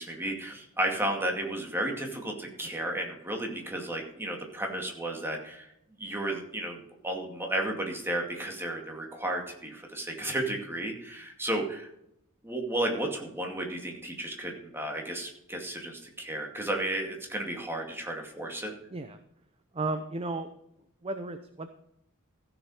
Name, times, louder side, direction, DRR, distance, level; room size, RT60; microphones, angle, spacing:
voice 1, 0.0-5.7 6.0-11.9 12.4-18.7, right 1 dB, 10° right, 1 dB, 2.3 m, -33 dB
voice 2, 19.7-20.5 21.0-21.7, right 2 dB, 25° right, 9 dB, 0.7 m, -33 dB
15.0 x 7.1 x 4.9 m, 0.78 s
head